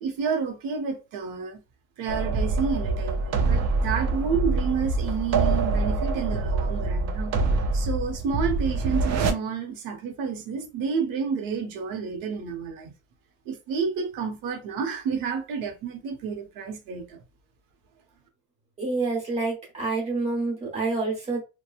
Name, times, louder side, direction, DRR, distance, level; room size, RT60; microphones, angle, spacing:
voice 1, 0.0-1.6 2.0-7.3 7.7-12.9 13.5-17.2, right 6 dB, 80° right, 0.9 m, -30 dB
sound 1, 2.1-9.3, right 3 dB, 50° right, 0.6 m, -25 dB
voice 2, 18.8-21.4, right 3 dB, 20° right, 1.2 m, -27 dB
3.0 x 2.2 x 2.4 m
cardioid pair, 155°, 34 cm